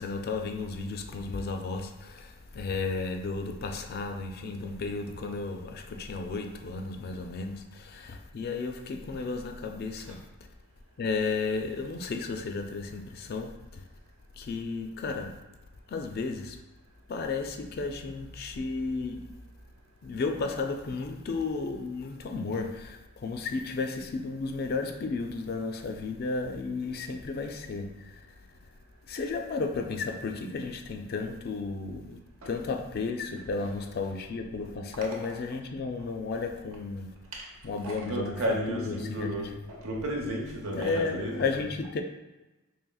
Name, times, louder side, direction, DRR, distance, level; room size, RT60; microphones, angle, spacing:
voice 1, 0.0-1.9 2.5-7.6 7.9-10.2 11.0-13.5 14.4-15.3 15.9-16.6 17.1-19.3 20.0-23.0 23.2-27.9 29.1-32.2 32.5-37.1 37.6-38.4 38.7-39.5 40.7-42.0, left 4 dB, 45° left, 0.3 m, -33 dB
voice 2, 37.8-41.7, equal, 75° right, 0.8 m, -33 dB
4.8 x 3.1 x 2.3 m
head